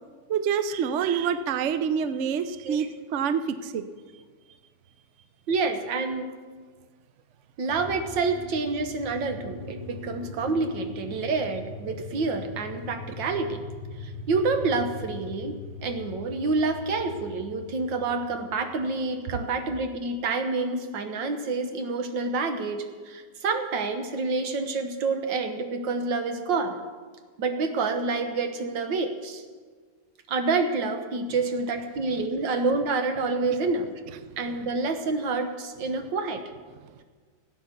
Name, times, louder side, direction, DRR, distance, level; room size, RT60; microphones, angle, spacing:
voice 1, 0.3-3.8 11.1-11.2, right 7 dB, 60° right, 11 dB, 0.8 m, -27 dB
voice 2, 5.5-6.3 7.6-13.6 14.0-26.8 27.4-29.4 30.3-33.9 34.4-36.4, right 3 dB, 90° right, 6 dB, 1.9 m, -28 dB
shakuhachi grave, 7.6-19.9, left 3 dB, 20° right, 2.6 m, -41 dB
16.5 x 8.5 x 6.7 m, 1.5 s
omnidirectional pair, 1.9 m